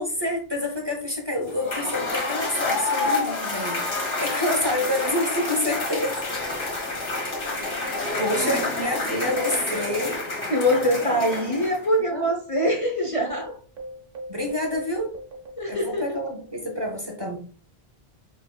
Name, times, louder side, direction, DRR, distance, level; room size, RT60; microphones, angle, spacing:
voice 1, 0.0-3.8 4.2-6.2 7.3-10.2 11.6-11.7 12.1-12.3 14.3-15.1 15.7-17.4, left 1 dB, 25° right, 0.8 m, -28 dB
Cheering / Applause / Crowd, 1.5-11.9, left 3 dB, 55° left, 1.3 m, -28 dB
sound 1, 6.1-10.9 11.2-11.3 11.9-16.7, right 1 dB, 60° right, 1.0 m, -42 dB
voice 2, 10.5-13.6 15.6-16.2, equal, 35° left, 0.7 m, -23 dB
4.9 x 3.3 x 2.3 m
omnidirectional pair, 1.0 m